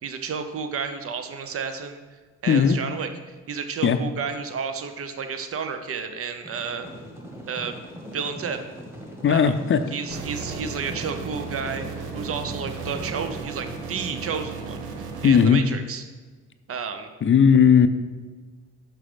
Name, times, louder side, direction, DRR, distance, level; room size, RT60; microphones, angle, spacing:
voice 1, 0.0-2.0 2.4-6.9 7.5-7.7 8.1-8.6 9.3-9.5 9.9-16.0 16.7-17.1, right 6 dB, 50° right, 8 dB, 0.8 m, -31 dB
voice 2, 2.5-2.8 3.8-4.0 9.2-9.8 15.2-15.6 17.2-17.9, left 7 dB, 40° left, 10 dB, 0.5 m, -17 dB
sound 1, 6.4-15.5, equal, 10° right, 1.6 m, -40 dB
sound 2, 10.1-15.4, right 5 dB, 80° right, 1.0 m, -35 dB
6.1 x 5.6 x 5.0 m, 1.4 s
cardioid pair, 90°, 30 cm